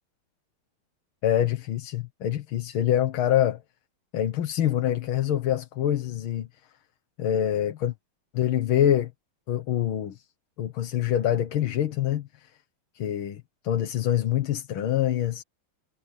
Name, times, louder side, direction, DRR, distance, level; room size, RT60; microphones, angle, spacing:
voice 1, 1.2-3.6 4.1-6.5 7.2-7.9 8.3-9.1 9.5-10.2 10.6-12.5 13.0-15.4, left 11 dB, 75° left, 2.0 m, -25 dB
omnidirectional pair, 2.4 m